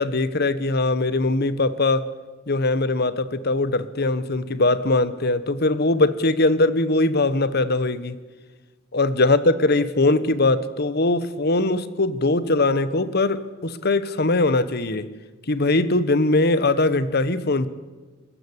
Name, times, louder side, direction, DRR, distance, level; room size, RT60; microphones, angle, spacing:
voice 1, 0.0-2.1 2.5-8.1 8.9-15.1 15.5-17.7, left 2 dB, 55° left, 15 dB, 1.2 m, -21 dB
22.0 x 15.0 x 10.0 m, 1.3 s
head